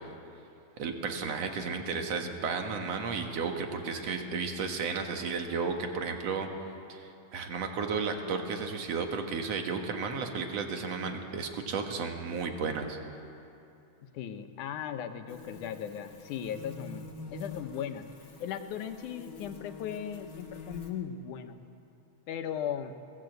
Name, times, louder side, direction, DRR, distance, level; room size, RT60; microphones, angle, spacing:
voice 1, 0.8-6.5 6.9-13.0, right 5 dB, 60° right, 4 dB, 2.6 m, -33 dB
voice 2, 14.0-18.1 18.4-21.6 22.3-22.9, left 9 dB, 90° left, 8 dB, 2.4 m, -37 dB
sound 1, 15.3-20.9, left 3 dB, 35° left, 2.0 m, -47 dB
22.5 x 16.0 x 8.0 m, 2.7 s
omnidirectional pair, 3.4 m